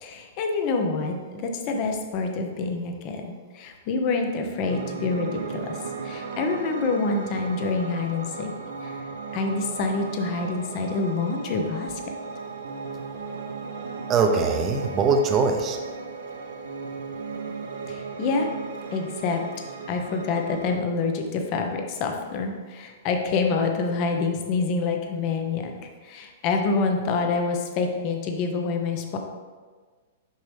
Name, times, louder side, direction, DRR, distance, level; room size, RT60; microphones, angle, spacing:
voice 1, 0.0-5.8 6.0-8.5 8.8-12.0 17.9-18.5 18.9-19.4 19.9-29.2, left 4 dB, 45° left, 3 dB, 0.9 m, -27 dB
Piano, 4.6-20.7, right 4 dB, 85° right, 0.9 m, -36 dB
voice 2, 14.1-15.8, right 4 dB, 30° right, 4 dB, 0.8 m, -22 dB
6.5 x 5.3 x 3.4 m, 1.4 s
hypercardioid pair, 125°, 0 cm